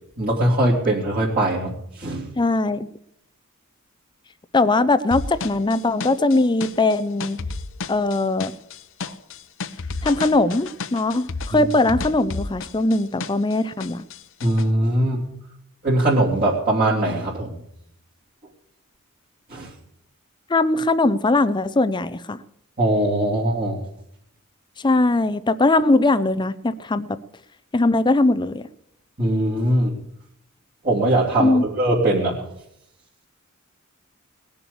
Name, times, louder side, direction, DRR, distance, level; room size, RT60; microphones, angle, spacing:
voice 1, 0.2-2.3 11.5-11.7 14.4-15.2 15.8-17.6 19.5-19.7 22.8-23.8 29.2-30.0 30.8-32.5, right 1 dB, 40° right, -7 dB, 3.0 m, -21 dB
voice 2, 2.4-2.9 4.5-7.4 7.9-8.5 10.0-14.0 20.5-22.4 24.8-27.2 27.7-28.6 31.4-31.6, left 2 dB, 20° left, 14 dB, 0.5 m, -20 dB
sound 1, 5.1-13.5 13.8-14.6, left 4 dB, 60° left, 0.8 m, -32 dB
19.5 x 7.0 x 8.6 m, 0.75 s
head